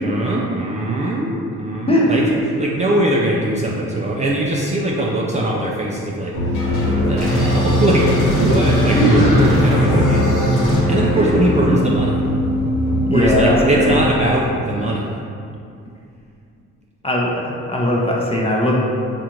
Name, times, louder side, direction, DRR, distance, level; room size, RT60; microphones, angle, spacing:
voice 1, 0.0-10.5 10.9-12.2 13.1-15.1, right 1 dB, 25° right, -4 dB, 0.4 m, -21 dB
sound 1, 6.3-14.0, left 1 dB, 80° left, 1.0 m, -21 dB
sound 2, 7.2-10.8, equal, 45° left, 1.1 m, -19 dB
voice 2, 13.1-13.9 17.0-18.8, left 1 dB, 20° left, -3 dB, 0.6 m, -19 dB
4.9 x 2.5 x 2.9 m, 2.4 s
cardioid pair, 90°, 30 cm